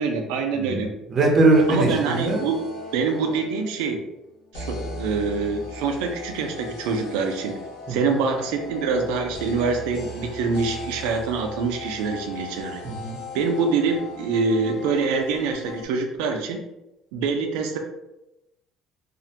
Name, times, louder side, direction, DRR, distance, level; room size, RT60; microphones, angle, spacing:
voice 1, 0.0-0.9 1.7-2.6 2.9-4.0 4.5-7.6 7.9-12.8 13.3-16.6 17.1-17.8, right 4 dB, 90° right, 3 dB, 0.3 m, -25 dB
voice 2, 0.5-2.4 7.9-8.1 12.8-13.2, right 2 dB, 40° right, -1 dB, 0.6 m, -21 dB
sound 1, 1.5-3.8 4.5-15.9, left 2 dB, 85° left, 0.7 m, -38 dB
2.4 x 2.1 x 2.8 m, 0.93 s
cardioid pair, 105°, 0 cm